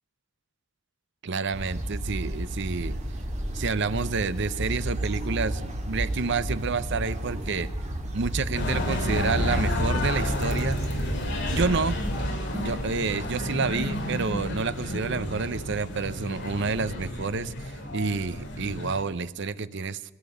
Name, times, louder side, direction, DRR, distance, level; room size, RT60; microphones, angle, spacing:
voice 1, 1.2-3.0 3.5-7.7 8.1-10.8 11.5-12.0 12.5-20.1, right 4 dB, 55° right, 15 dB, 0.7 m, -29 dB
sound 1, 1.5-12.3, right 1 dB, 35° right, 1.9 m, -32 dB
sound 2, 8.5-19.0, left 1 dB, 55° left, 2.6 m, -30 dB
18.0 x 7.4 x 9.9 m, 1.1 s
head